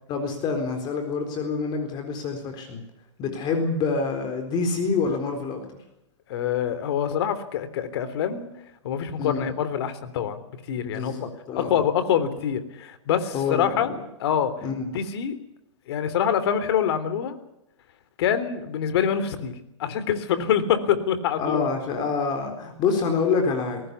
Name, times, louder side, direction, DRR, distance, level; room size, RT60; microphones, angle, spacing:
voice 1, 0.1-2.8 3.2-5.7 9.2-9.5 10.8-11.9 13.3-14.0 14.6-14.9 21.4-23.8, left 4 dB, 30° left, 5 dB, 4.1 m, -27 dB
voice 2, 6.3-8.5 8.8-10.4 10.7-11.3 11.5-13.9 14.2-14.5 14.9-15.3 15.9-17.3 18.2-19.5 19.8-21.7, left 8 dB, 55° left, 12 dB, 3.4 m, -25 dB
22.0 x 18.5 x 8.3 m, 0.84 s
hypercardioid pair, 145°, 15 cm